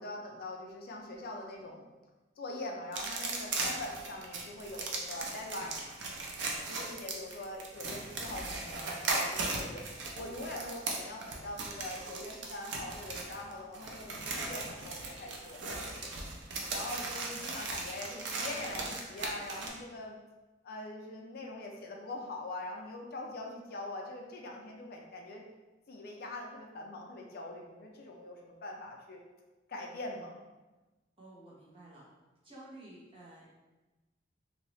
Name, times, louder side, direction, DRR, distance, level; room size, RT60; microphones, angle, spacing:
voice 1, 0.0-1.9 2.4-6.0 6.7-9.8 10.1-16.1 16.7-20.2 20.6-25.4 25.9-29.2 29.7-30.4, left 1 dB, 55° left, 1 dB, 0.4 m, -43 dB
sound 1, 2.9-19.7, right 3 dB, 75° right, 0.6 m, -38 dB
voice 2, 31.2-32.1 32.4-33.5, right 1 dB, 30° right, -7 dB, 0.9 m, -52 dB
3.0 x 2.7 x 3.0 m, 1.1 s
head